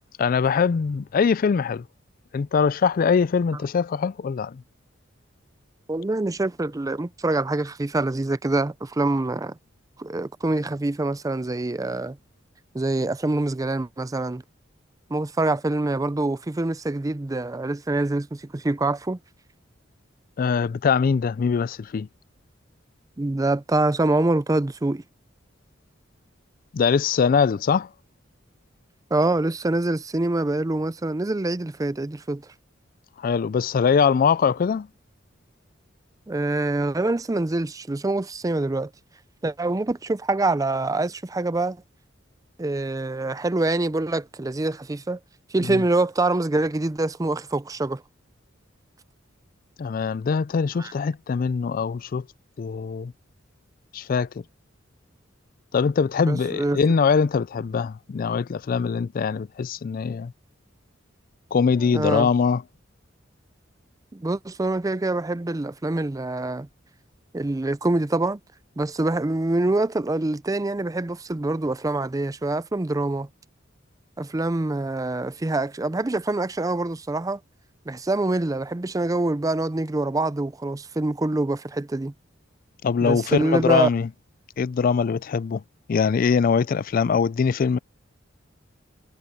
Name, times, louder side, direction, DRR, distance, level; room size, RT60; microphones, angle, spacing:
voice 1, 0.2-1.8 2.3-4.6 20.4-22.1 26.7-27.9 33.2-34.9 45.7-45.8 49.8-52.2 52.6-53.1 53.9-54.3 55.7-60.3 61.5-62.6 82.8-84.1 84.6-85.6 85.9-87.8, left 6 dB, 45° left, 0.3 m, -22 dB
voice 2, 5.9-9.6 10.0-12.2 12.7-14.4 15.1-19.2 23.2-25.0 29.1-32.4 36.3-38.9 39.4-41.8 42.6-45.2 45.5-48.0 50.8-50.9 56.2-56.8 61.9-62.3 64.1-66.7 67.3-68.4 68.8-73.3 74.2-77.4 77.9-82.1 83.0-83.9, right 2 dB, 15° right, 0.4 m, -25 dB
head